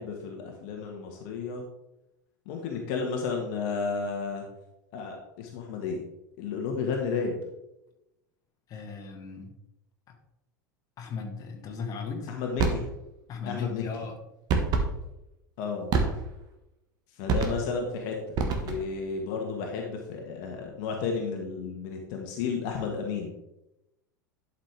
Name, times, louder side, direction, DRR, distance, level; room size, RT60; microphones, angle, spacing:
voice 1, 0.0-1.6 2.4-4.4 4.9-6.0 6.4-7.3 12.3-12.8 13.5-13.8 15.6-15.9 17.2-18.2 18.6-23.3, left 5 dB, 50° left, 1 dB, 1.5 m, -32 dB
voice 2, 8.7-9.6 10.1-10.2 11.0-12.4 13.3-14.2, left 5 dB, 35° left, 2 dB, 1.8 m, -37 dB
sound 1, 12.6-12.9 14.5-14.9 15.9-16.4 17.3-17.8 18.3-19.0, right 4 dB, 40° right, 1.5 m, -26 dB
11.5 x 5.7 x 3.4 m, 0.90 s
figure-of-eight pair, 80°, 10 cm